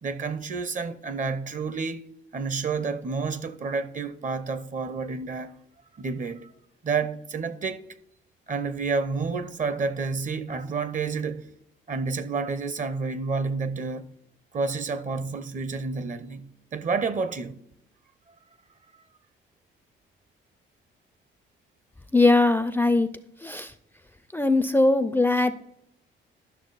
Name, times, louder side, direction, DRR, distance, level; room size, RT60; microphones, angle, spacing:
voice 1, 0.0-2.1 2.3-5.5 6.0-6.5 6.8-7.9 8.5-11.5 11.9-14.1 14.5-17.6, right 4 dB, 40° right, 0.8 m, -29 dB
voice 2, 22.1-23.1 23.4-23.7 24.3-25.5, left 2 dB, 10° left, 0.4 m, -20 dB
11.5 x 6.2 x 4.0 m
cardioid pair, 90°, 20 cm